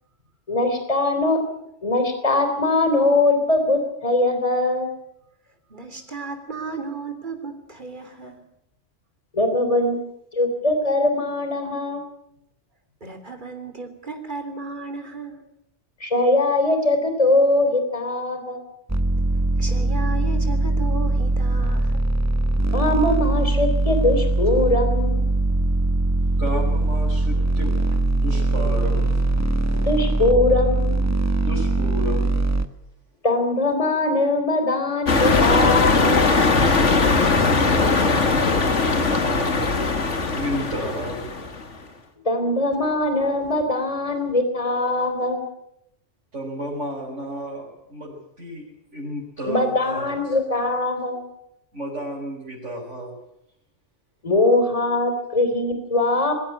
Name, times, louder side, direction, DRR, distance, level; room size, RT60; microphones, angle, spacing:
voice 1, 0.5-1.4 1.8-4.9 9.3-10.0 10.3-12.0 16.0-18.6 22.7-25.3 29.7-31.1 33.2-36.3 42.3-45.4 49.5-51.3 54.2-56.3, left 2 dB, 30° left, 6 dB, 3.4 m, -21 dB
voice 2, 5.7-8.5 13.0-15.4 19.6-22.0, right 3 dB, 40° right, 6 dB, 3.6 m, -34 dB
sound 1, 18.9-32.7, right 2 dB, 15° right, 1.0 m, -21 dB
voice 3, 26.4-29.2 31.4-32.4 37.5-38.7 39.2-39.8 40.1-41.2 46.3-48.7 48.9-50.4 51.7-53.1, equal, 80° right, -4 dB, 5.9 m, -32 dB
sound 2, 35.1-41.6, left 3 dB, 80° left, 2.4 m, -20 dB
21.5 x 16.5 x 9.9 m, 0.78 s
omnidirectional pair, 1.2 m